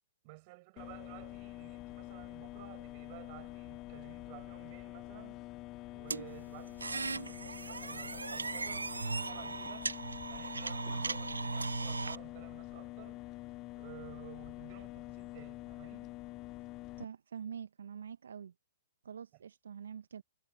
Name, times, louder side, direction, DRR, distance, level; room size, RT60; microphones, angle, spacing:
voice 1, 0.2-5.4 5.9-9.9 10.3-13.2 13.8-16.2 19.3-19.4, right 28 dB, 40° right, 6.1 m, -54 dB
sound 1, 0.8-17.0, left 18 dB, 30° left, 0.6 m, -46 dB
sound 2, 6.1-12.2, right 3 dB, 90° right, 0.6 m, -38 dB
voice 2, 17.0-18.5 19.0-20.2, right 7 dB, 75° right, 1.0 m, -45 dB
hypercardioid pair, 125°, 0 cm